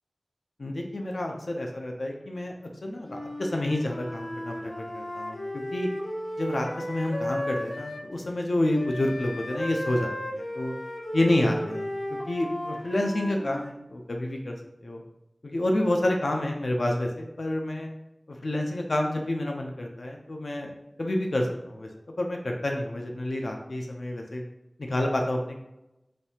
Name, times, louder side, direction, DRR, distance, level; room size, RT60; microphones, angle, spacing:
voice 1, 0.6-2.5 2.8-5.9 6.4-10.7 11.1-11.9 12.3-14.6 14.8-15.0 15.4-17.9 18.3-20.7 21.0-21.9 22.2-24.4 24.8-25.6, left 1 dB, 85° left, 1 dB, 0.5 m, -29 dB
Wind instrument woodwind instrument, 3.0-8.1 8.7-13.7, equal, 60° left, 0.9 m, -35 dB
5.1 x 2.7 x 2.8 m, 0.89 s
wide cardioid pair, 55°, 0 cm